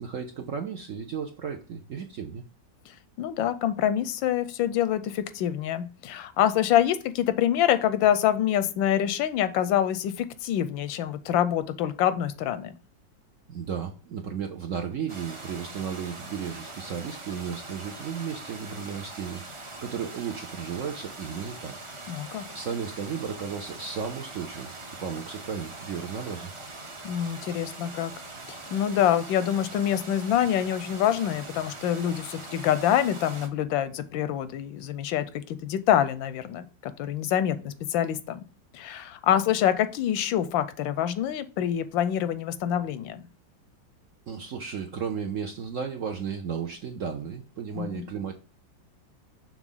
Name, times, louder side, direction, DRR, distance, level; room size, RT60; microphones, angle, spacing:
voice 1, 0.0-2.4 13.5-21.8 22.5-24.7 25.0-26.5 44.3-48.3, right 7 dB, 65° right, 4 dB, 0.8 m, -34 dB
voice 2, 3.2-12.7 22.1-22.4 27.0-28.1 28.5-38.4 38.7-43.3 47.8-48.1, left 10 dB, 90° left, 13 dB, 1.4 m, -26 dB
sound 1, 15.1-33.5, right 2 dB, 40° right, 0.4 m, -42 dB
6.1 x 3.8 x 5.5 m, 0.35 s
omnidirectional pair, 2.1 m